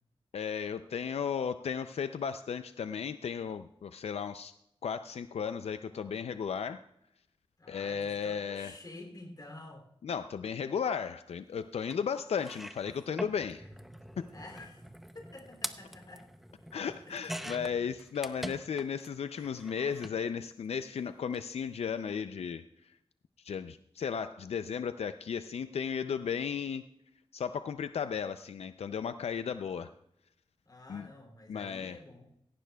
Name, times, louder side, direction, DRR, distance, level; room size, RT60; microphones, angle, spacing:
voice 1, 0.3-4.6 4.8-6.8 7.7-8.8 10.0-13.7 16.7-22.6 23.4-26.8 27.3-29.9 30.9-31.1 31.5-32.0, left 7 dB, 85° left, 10 dB, 0.4 m, -35 dB
voice 2, 7.6-9.9 14.3-14.8 15.1-16.3 17.1-17.2 30.6-32.3, left 2 dB, 40° left, 4 dB, 2.8 m, -49 dB
sound 1, 11.9-12.0 12.4-19.1 19.4-20.2 21.2-21.4 21.6-21.7, equal, ahead, 0.6 m, -44 dB
17.5 x 15.0 x 2.3 m, 0.78 s
wide cardioid pair, 125°, 10 cm